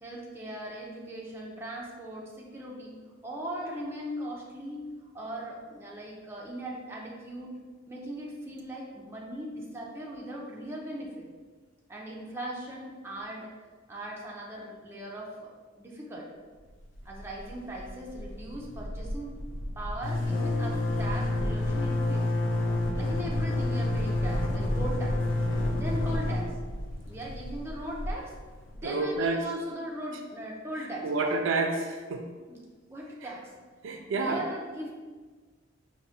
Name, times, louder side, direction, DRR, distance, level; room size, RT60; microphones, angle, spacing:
voice 1, 0.0-2.9 3.2-4.9 5.1-7.5 7.9-11.3 11.9-13.6 13.9-15.5 15.8-16.3 17.1-19.4 19.8-22.3 23.0-25.2 25.7-26.6 27.1-28.3 28.7-31.2 32.5-32.6 32.9-33.5 34.1-34.9, right 1 dB, 15° right, -3 dB, 0.5 m, -39 dB
sound 1, 17.0-17.5 17.8-17.9 18.1-28.8, left 1 dB, 75° left, 0.5 m, -29 dB
voice 2, 28.8-29.4 31.0-32.2 33.8-34.4, right 3 dB, 70° right, 4 dB, 0.4 m, -28 dB
4.7 x 2.1 x 2.7 m, 1.4 s
head